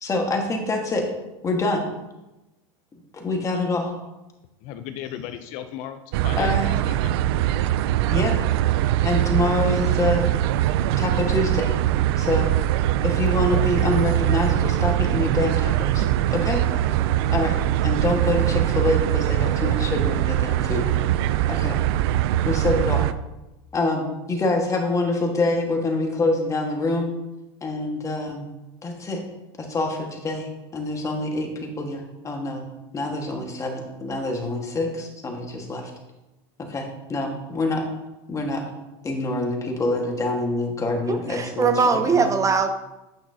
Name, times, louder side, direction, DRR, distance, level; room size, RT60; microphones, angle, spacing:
voice 1, 0.0-1.0 1.4-1.8 3.1-3.9 6.4-6.7 8.1-8.3 9.0-10.3 11.0-11.7 12.2-12.5 13.0-16.0 16.3-16.6 17.3-20.8 21.5-21.8 22.4-23.1 23.7-27.1 27.6-28.5 28.8-29.2 29.7-32.6 32.9-35.9 36.7-37.9 38.3-38.6 39.0-42.4, left 2 dB, 20° left, 2 dB, 1.5 m, -25 dB
voice 2, 4.6-7.1, left 10 dB, 55° left, 9 dB, 0.5 m, -36 dB
sound 1, 6.1-23.1, right 13 dB, 65° right, 0.4 m, -22 dB
voice 3, 41.1-42.7, right 5 dB, 20° right, 8 dB, 0.6 m, -21 dB
8.8 x 5.9 x 2.7 m, 1.0 s
hypercardioid pair, 105°, 14 cm